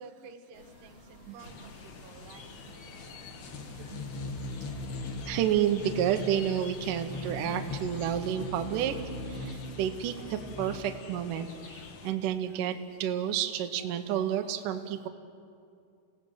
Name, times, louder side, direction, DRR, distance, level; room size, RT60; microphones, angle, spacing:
voice 1, 0.0-2.5, right 4 dB, 85° right, 6 dB, 3.4 m, -51 dB
sound 1, 0.5-8.2, left 1 dB, 40° left, 3.5 m, -53 dB
voice 2, 1.3-1.7 3.9-4.0 5.3-9.0 9.3-15.1, right 10 dB, 70° right, 6 dB, 2.2 m, -30 dB
sound 2, 1.4-12.1, left 2 dB, 60° left, 1.4 m, -40 dB
28.5 x 17.0 x 7.9 m, 2.4 s
omnidirectional pair, 4.6 m